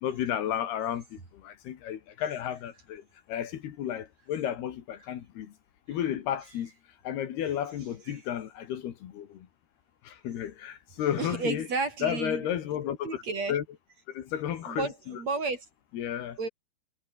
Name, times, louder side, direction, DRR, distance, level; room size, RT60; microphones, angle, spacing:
voice 1, 0.0-5.5 5.9-6.7 7.0-9.5 10.0-11.7 12.0-13.2 13.5-13.6 14.1-15.2 15.9-16.4, left 10 dB, 70° left, 3.7 m, -33 dB
voice 2, 11.2-12.5 13.0-13.6 14.7-15.7 16.4-16.5, right 4 dB, 40° right, 5.1 m, -32 dB
omnidirectional pair, 5.0 m